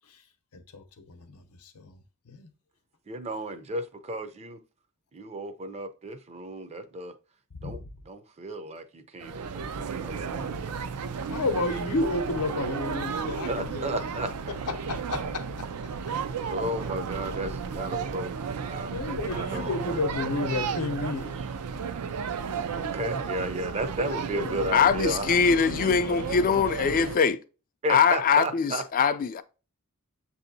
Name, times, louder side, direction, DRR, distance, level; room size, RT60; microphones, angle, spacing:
voice 1, 0.5-2.5 7.6-7.9 11.3-14.0 14.7-15.7 18.9-21.4 24.0-24.6 25.4-26.5 26.8-27.2, left 3 dB, 90° left, 0.7 m, -32 dB
voice 2, 3.1-4.6 5.1-7.1 7.6-10.7 13.5-14.5 16.5-18.9 19.3-20.0 21.4-21.5 22.7-25.3 27.8-28.8, right 1 dB, 30° right, 0.5 m, -34 dB
sound 1, 9.2-27.2, right 6 dB, 85° right, 0.4 m, -33 dB
voice 3, 24.7-27.4 27.9-29.4, left 6 dB, 40° left, 0.3 m, -22 dB
7.5 x 2.7 x 2.6 m
head